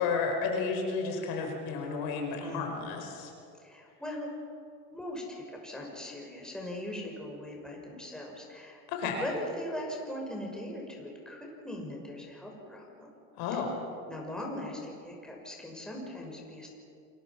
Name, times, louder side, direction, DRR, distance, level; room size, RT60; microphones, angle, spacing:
voice 1, 0.0-3.3 8.9-9.2 13.4-13.8, left 5 dB, 60° left, 2 dB, 4.8 m, -32 dB
voice 2, 3.6-4.3 4.9-13.1 14.1-16.7, left 1 dB, ahead, -1 dB, 6.1 m, -40 dB
28.5 x 22.5 x 6.0 m, 2.5 s
supercardioid pair, 110°, 41 cm